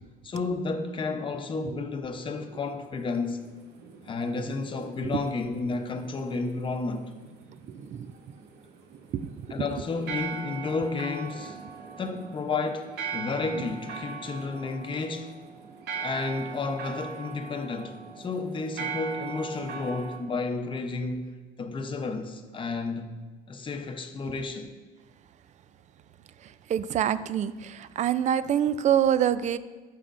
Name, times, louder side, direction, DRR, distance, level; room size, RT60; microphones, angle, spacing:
voice 1, 0.2-3.4 4.0-7.1 9.5-11.6 12.0-15.5 16.0-21.3 21.6-23.2 23.5-24.7, left 3 dB, 30° left, 0.7 m, -32 dB
sound 1, 2.5-20.2, right 5 dB, 75° right, 0.9 m, -41 dB
voice 2, 7.7-8.1 9.1-9.3 26.4-29.6, right 9 dB, 45° right, 0.4 m, -26 dB
12.5 x 5.6 x 2.5 m
cardioid pair, 110°, 17 cm